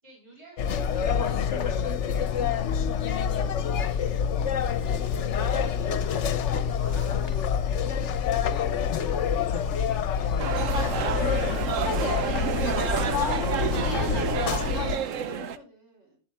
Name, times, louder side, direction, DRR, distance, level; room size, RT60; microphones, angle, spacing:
voice 1, 0.0-3.4 3.7-8.6 9.0-11.0, equal, 25° right, -4 dB, 6.2 m, -51 dB
sound 1, 0.6-15.0, left 7 dB, 70° left, 1.1 m, -27 dB
sound 2, 1.7-3.2 3.5-3.7 4.0-15.2, left 6 dB, 50° left, 1.1 m, -47 dB
voice 2, 8.7-9.2 14.5-16.2, left 1 dB, 65° right, -1 dB, 4.9 m, -54 dB
sound 3, 10.4-15.6, right 7 dB, 85° right, 1.2 m, -29 dB
12.0 x 11.5 x 3.5 m, 0.35 s
omnidirectional pair, 1.3 m